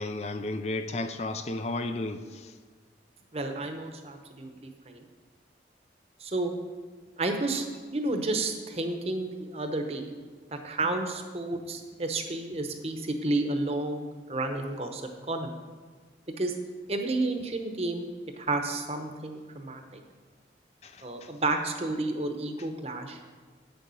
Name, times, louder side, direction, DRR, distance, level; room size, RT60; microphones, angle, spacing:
voice 1, 0.0-2.5 20.8-21.3, left 2 dB, 35° left, 8 dB, 0.4 m, -33 dB
voice 2, 3.3-5.0 6.2-6.5 7.2-7.7 7.9-10.1 10.5-14.0 14.3-15.0 15.3-15.5 16.4-16.5 16.9-18.1 18.4-20.0 21.0-23.2, right 2 dB, 35° right, 5 dB, 0.9 m, -31 dB
8.6 x 6.8 x 6.3 m, 1.4 s
head